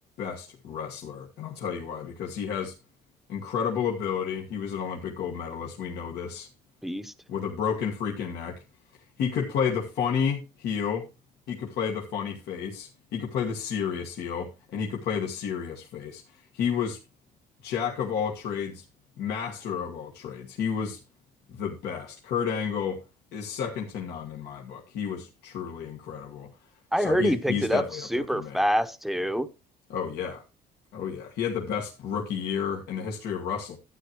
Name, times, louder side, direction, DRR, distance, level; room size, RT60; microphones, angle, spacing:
voice 1, 0.2-2.7 3.3-6.5 7.3-8.6 9.2-11.1 11.5-17.0 17.6-18.8 19.2-21.0 21.5-23.0 23.3-26.5 27.0-28.6 29.9-30.4 30.9-33.8, left 7 dB, 75° left, 1.7 m, -31 dB
voice 2, 6.8-7.1 26.9-29.5, equal, ahead, 0.9 m, -26 dB
12.0 x 9.3 x 3.1 m
cardioid pair, 110°, 17 cm